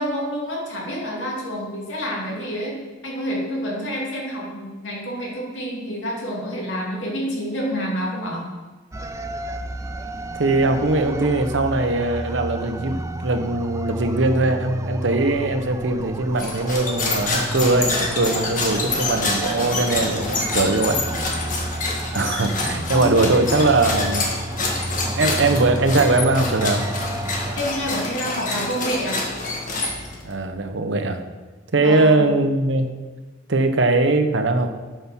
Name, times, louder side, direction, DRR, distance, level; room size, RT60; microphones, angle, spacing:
voice 1, 0.0-8.5 22.9-23.2 27.6-29.2 31.8-32.3, equal, 80° left, -2 dB, 2.4 m, -28 dB
sound 1, 8.9-27.7, right 1 dB, 15° right, 0.4 m, -31 dB
voice 2, 10.3-21.0 22.1-24.3 25.1-26.8 30.2-31.2 31.7-33.1 33.5-34.7, right 2 dB, 80° right, 7 dB, 0.9 m, -21 dB
sound 2, 16.4-30.3, left 3 dB, 45° left, 1.6 m, -27 dB
9.2 x 5.7 x 6.1 m, 1.3 s
head